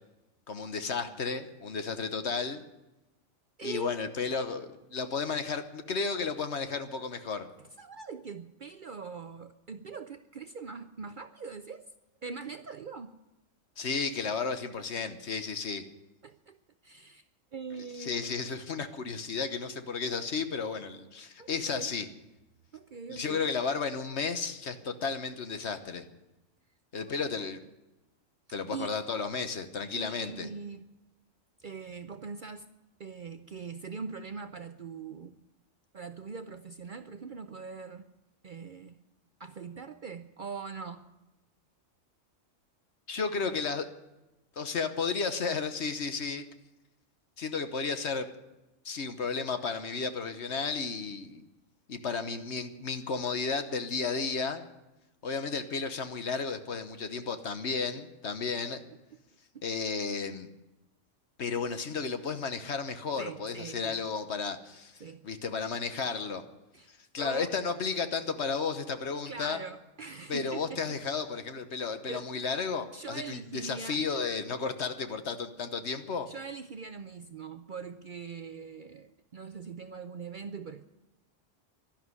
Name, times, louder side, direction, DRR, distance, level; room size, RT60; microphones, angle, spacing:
voice 1, 0.5-2.6 3.6-7.5 13.8-15.8 18.0-22.1 23.1-26.0 26.9-27.6 28.5-30.5 43.1-43.9 44.6-46.5 47.4-48.3 48.8-51.4 51.9-54.6 55.2-58.8 59.6-60.5 61.4-66.4 66.9-69.6 70.3-76.3, left 5 dB, 60° left, 9 dB, 1.3 m, -33 dB
voice 2, 3.6-4.0 7.6-11.9 12.2-13.1 16.2-16.6 16.8-17.3 17.5-18.2 21.4-21.9 22.7-23.5 28.7-28.9 29.9-30.9 31.6-32.7 33.0-35.4 35.9-38.1 38.4-39.0 39.4-41.0 58.2-58.5 59.5-59.7 63.2-64.0 65.0-65.2 66.7-67.5 69.3-71.0 72.1-72.3 72.9-74.0 76.3-80.8, right 5 dB, 50° right, 9 dB, 0.6 m, -42 dB
12.0 x 11.5 x 9.5 m, 0.98 s
omnidirectional pair, 1.3 m